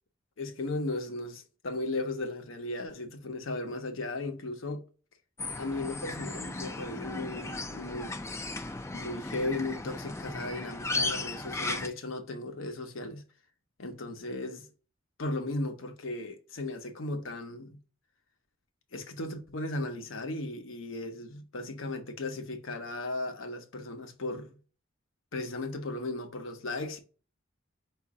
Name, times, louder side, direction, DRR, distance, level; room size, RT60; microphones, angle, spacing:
voice 1, 0.4-4.8 5.6-8.2 8.9-13.2 13.8-14.7 15.2-17.8 18.9-24.6 25.3-27.0, left 2 dB, 75° left, 0.9 m, -36 dB
sound 1, 5.4-11.9, left 2 dB, 15° left, 0.4 m, -36 dB
5.0 x 2.5 x 3.6 m
head